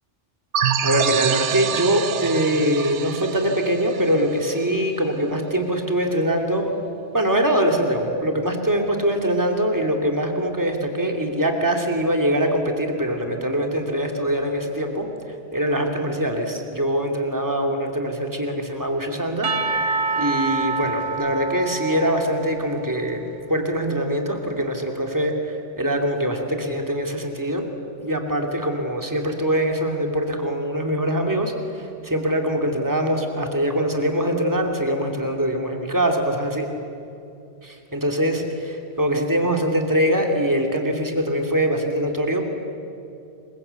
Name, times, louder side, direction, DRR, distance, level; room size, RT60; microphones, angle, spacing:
sound 1, 0.5-5.0, right 9 dB, 75° right, 1.1 m, -26 dB
voice 1, 0.8-6.7 7.1-15.1 15.5-19.5 19.8-23.2 23.5-27.7 28.0-36.7 37.6-42.5, equal, 15° right, 3 dB, 2.7 m, -23 dB
Percussion / Church bell, 19.4-23.4, right 4 dB, 45° right, 1.5 m, -27 dB
28.0 x 22.5 x 8.3 m, 2.7 s
omnidirectional pair, 1.2 m